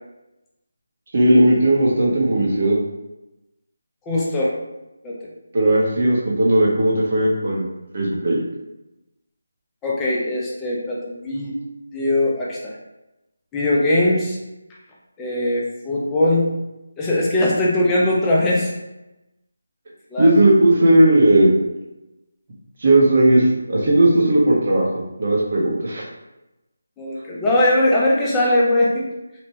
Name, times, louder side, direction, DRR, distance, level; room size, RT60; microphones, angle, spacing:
voice 1, 1.1-2.8 5.5-7.7 7.9-8.4 20.2-21.5 22.8-24.9 25.2-26.0, right 1 dB, 45° right, -3 dB, 0.8 m, -16 dB
voice 2, 4.0-4.5 5.0-5.2 9.8-11.6 11.9-12.8 13.5-14.4 15.2-16.5 17.0-18.7 20.1-20.3 27.0-29.1, left 1 dB, 10° left, -5 dB, 0.4 m, -20 dB
2.9 x 2.1 x 2.8 m, 0.98 s
figure-of-eight pair, 165°, 0 cm